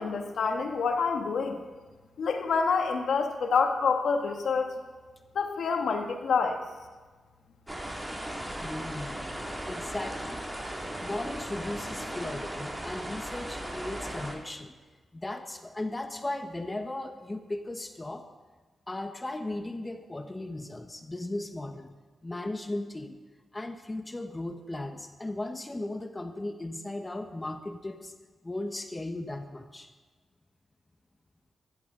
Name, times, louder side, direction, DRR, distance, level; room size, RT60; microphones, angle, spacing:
voice 1, 0.0-1.6 2.2-4.7 5.3-6.6, left 5 dB, 75° left, 5 dB, 1.4 m, -27 dB
sound 1, 7.7-14.3, right 1 dB, 15° right, 2.4 m, -37 dB
voice 2, 8.6-9.3 9.7-10.4 11.0-14.7 15.1-18.3 18.9-21.9 22.2-23.2 23.5-28.1 28.4-29.9, left 2 dB, 25° left, 7 dB, 1.1 m, -36 dB
14.0 x 13.5 x 3.8 m, 1.3 s
cardioid pair, 55°, 0 cm